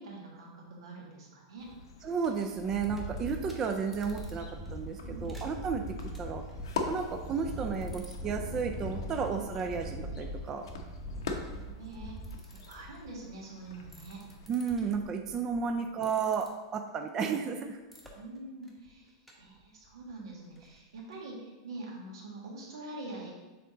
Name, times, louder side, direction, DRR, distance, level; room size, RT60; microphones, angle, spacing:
voice 1, 0.0-1.7 5.0-5.3 11.5-12.2 12.7-14.2 18.1-23.3, right 2 dB, 90° right, -2 dB, 1.9 m, -45 dB
sound 1, 1.6-14.5, left 4 dB, 85° left, 0.8 m, -44 dB
voice 2, 2.0-4.5 4.7-5.8 6.2-6.4 6.9-10.6 14.5-17.8, right 6 dB, 20° right, 4 dB, 0.4 m, -33 dB
sound 2, 2.2-13.0 13.7-15.7 16.0-16.5 17.9-18.1 18.7-18.9 19.3-19.4 19.6-19.7 20.0-20.1 20.6-20.7 21.1-21.2, equal, ahead, 0.9 m, -42 dB
6.7 x 3.9 x 3.8 m, 1.2 s
supercardioid pair, 155°, 2 cm